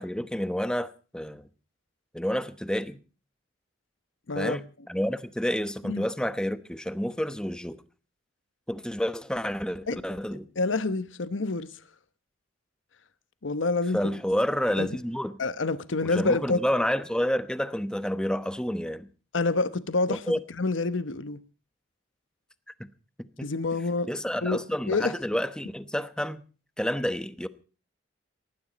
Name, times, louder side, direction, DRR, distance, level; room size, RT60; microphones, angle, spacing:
voice 1, 0.0-1.4 2.1-3.0 4.3-7.8 8.7-10.5 13.9-15.4 16.0-19.1 20.1-20.4 22.8-22.9 23.2-23.5 24.1-26.4 26.8-27.5, equal, 5° left, 1.0 m, -29 dB
voice 2, 4.3-4.6 5.8-6.1 9.9-10.0 10.6-11.7 13.4-14.1 14.8-14.9 15.4-16.6 19.3-20.2 20.6-21.4 23.4-24.1 24.4-24.6 24.9-25.1, left 3 dB, 80° left, 1.0 m, -27 dB
19.5 x 14.5 x 4.1 m
head